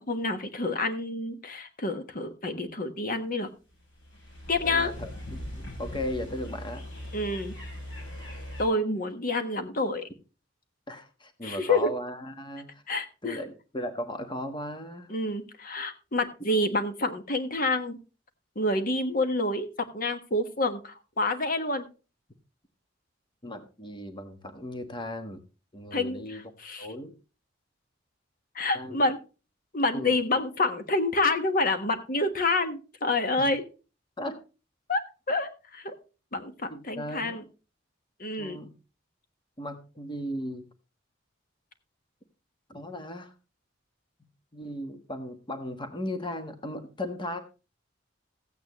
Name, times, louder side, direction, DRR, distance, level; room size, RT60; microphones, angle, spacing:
voice 1, 0.0-3.5 4.5-4.9 7.1-7.5 8.6-10.1 11.4-11.9 12.9-13.4 15.1-18.0 18.5-21.8 25.9-26.9 28.5-29.2 29.7-33.6 34.9-35.0 35.3-35.9 36.3-37.4 38.2-38.6, left 2 dB, 50° left, 8 dB, 1.4 m, -28 dB
sound 1, 3.7-8.6, left 1 dB, 75° left, 6.4 m, -40 dB
voice 2, 4.6-6.8 10.9-12.8 13.2-15.1 23.4-25.4 25.7-26.4 26.8-27.2 28.7-29.0 29.9-30.2 33.4-33.5 34.2-34.4 36.7-37.4 38.4-38.8 39.6-40.7 42.7-43.3 44.2-47.4, left 1 dB, 25° left, 7 dB, 1.3 m, -37 dB
15.0 x 8.9 x 3.0 m, 0.32 s
head